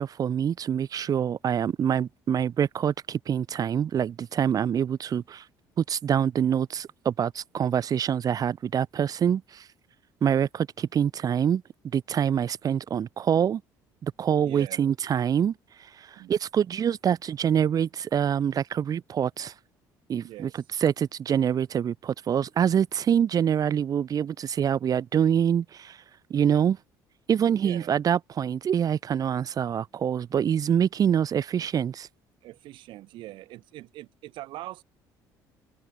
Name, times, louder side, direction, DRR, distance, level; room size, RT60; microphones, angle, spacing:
voice 1, 0.0-5.4 5.9-9.6 10.2-11.6 11.9-13.6 14.0-15.5 16.0-19.5 20.1-26.0 26.3-26.8 27.3-32.1, right 8 dB, 45° right, 1.8 m, -25 dB
voice 2, 14.4-14.8 16.2-16.3 20.2-20.5 27.6-27.9 32.4-34.8, right 16 dB, 75° right, 5.4 m, -42 dB
cardioid pair, 95°, 8 cm